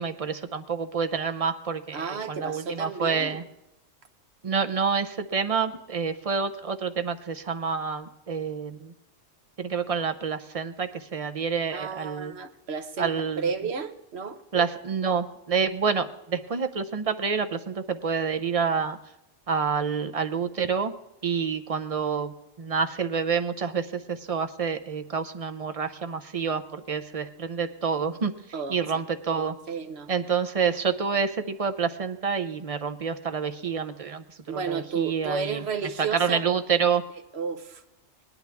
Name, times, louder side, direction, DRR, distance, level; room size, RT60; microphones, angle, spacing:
voice 1, 0.0-3.4 4.4-8.9 9.6-12.3 13.0-13.5 14.5-19.0 19.5-20.9 21.2-28.3 28.7-29.5 30.1-35.6 36.0-37.0, right 6 dB, 40° right, 9 dB, 0.6 m, -28 dB
voice 2, 1.9-3.4 11.7-14.4 28.5-29.0 29.7-30.1 34.5-36.4 37.3-37.8, right 5 dB, 60° right, 8 dB, 1.2 m, -32 dB
18.5 x 11.0 x 3.5 m, 0.87 s
omnidirectional pair, 1.3 m